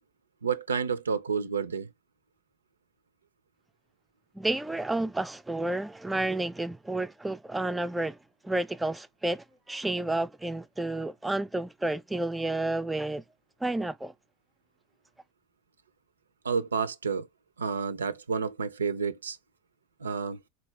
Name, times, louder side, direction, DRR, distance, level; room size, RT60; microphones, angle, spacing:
voice 1, 0.4-1.9 16.4-17.3 17.6-19.4 20.0-20.4, right 5 dB, 90° right, 0.4 m, -30 dB
voice 2, 4.3-8.2 8.4-13.2 13.6-14.1, right 2 dB, 10° right, 0.3 m, -31 dB
4.1 x 2.3 x 3.0 m
hypercardioid pair, 90°, 0 cm